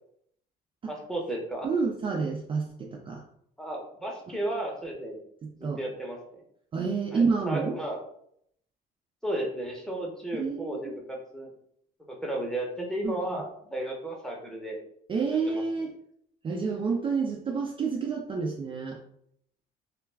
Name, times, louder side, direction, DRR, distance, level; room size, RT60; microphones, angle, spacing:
voice 1, 0.9-1.7 3.6-5.2 5.6-6.4 7.1-8.0 9.2-11.5 12.1-14.8 15.5-15.6, right 1 dB, 5° left, -1 dB, 0.7 m, -34 dB
voice 2, 1.6-3.2 5.4-5.8 6.7-7.7 10.3-10.9 13.0-13.4 15.1-15.9 16.4-19.0, right 5 dB, 30° right, 0 dB, 0.4 m, -29 dB
2.2 x 2.2 x 3.2 m, 0.69 s
cardioid pair, 110°, 17 cm